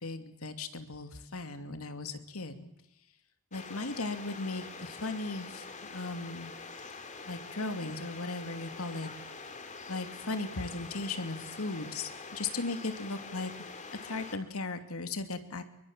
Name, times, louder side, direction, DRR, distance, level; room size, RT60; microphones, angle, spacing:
voice 1, 0.0-2.7 3.5-5.6 5.9-6.5 7.3-9.1 9.9-13.5 14.0-15.6, left 3 dB, 75° left, 8 dB, 2.7 m, -37 dB
sound 1, 3.5-14.4, left 4 dB, 35° left, 2.9 m, -45 dB
28.5 x 23.0 x 7.5 m, 0.80 s
head